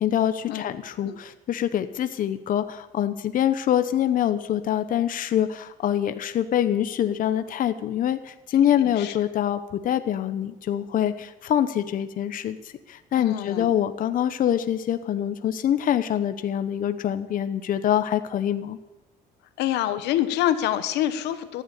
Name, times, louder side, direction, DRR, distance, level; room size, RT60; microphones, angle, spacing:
voice 1, 0.0-12.6 12.9-18.8, left 10 dB, 55° left, 10 dB, 0.9 m, -25 dB
voice 2, 8.8-9.2 13.1-13.7 19.6-21.6, left 12 dB, 85° left, 12 dB, 1.2 m, -26 dB
15.0 x 10.0 x 8.5 m, 1.1 s
cardioid pair, 110°, 17 cm